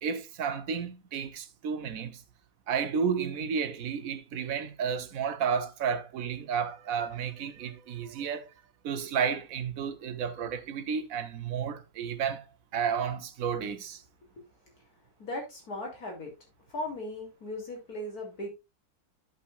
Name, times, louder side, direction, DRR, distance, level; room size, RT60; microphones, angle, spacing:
voice 1, 0.0-2.2 2.7-8.5 8.8-12.4 12.7-14.0, right 7 dB, 65° right, 1.3 m, -32 dB
voice 2, 15.2-16.3 16.7-18.5, left 1 dB, 80° left, 3.5 m, -37 dB
13.0 x 5.7 x 2.5 m
omnidirectional pair, 1.6 m